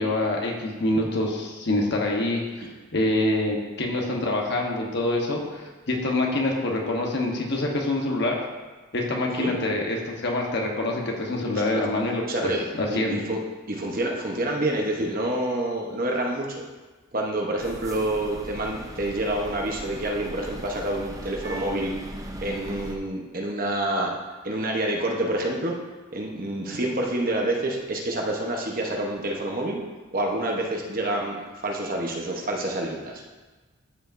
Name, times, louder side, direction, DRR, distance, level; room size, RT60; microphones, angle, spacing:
voice 1, 0.0-2.7 2.9-8.4 8.9-12.2 12.8-13.2, left 2 dB, 50° left, 0 dB, 1.1 m, -26 dB
voice 2, 12.3-12.7 13.1-13.4 13.7-16.6 17.1-21.9 22.4-24.1 24.4-25.7 26.1-29.8 30.1-31.4 31.6-33.2, right 1 dB, 40° right, 0 dB, 0.9 m, -27 dB
sound 1, 17.6-23.0, right 1 dB, 15° right, 0.5 m, -38 dB
12.5 x 5.1 x 2.6 m, 1.3 s
head